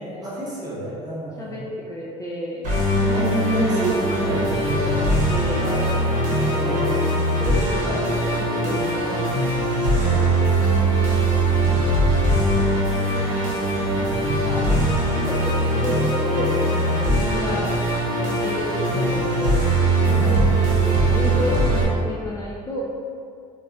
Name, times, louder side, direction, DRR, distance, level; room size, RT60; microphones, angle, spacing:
voice 1, 0.0-1.6 3.1-4.5 5.5-6.0 6.4-6.9 7.8-8.1 9.9-10.3 17.4-17.6 20.0-20.3, right 1 dB, 25° right, -6 dB, 0.9 m, -29 dB
voice 2, 1.4-2.6 3.0-5.6 6.4-6.8 7.4-9.4 10.0-10.3 11.4-12.0 12.3-12.9 14.4-17.7 18.2-19.7 20.0-22.8, left 1 dB, 25° left, -5 dB, 0.4 m, -31 dB
Musical instrument, 2.6-21.8, right 1 dB, 60° right, 0.9 m, -21 dB
2.2 x 2.1 x 3.6 m, 2.3 s
supercardioid pair, 100°, 14 cm